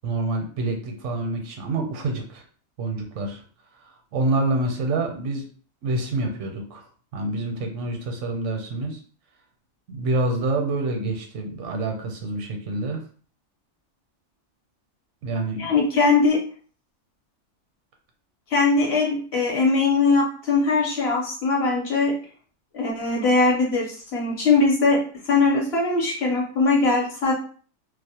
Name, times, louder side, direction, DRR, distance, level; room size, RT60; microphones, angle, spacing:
voice 1, 0.0-2.4 2.8-3.4 4.1-5.5 5.8-6.8 7.1-9.0 9.9-13.0 15.2-15.7, right 2 dB, 75° right, 3 dB, 0.9 m, -27 dB
voice 2, 15.6-16.4 18.5-22.1 22.7-27.3, left 3 dB, 60° left, -2 dB, 0.9 m, -21 dB
2.3 x 2.1 x 2.8 m, 0.43 s
omnidirectional pair, 1.3 m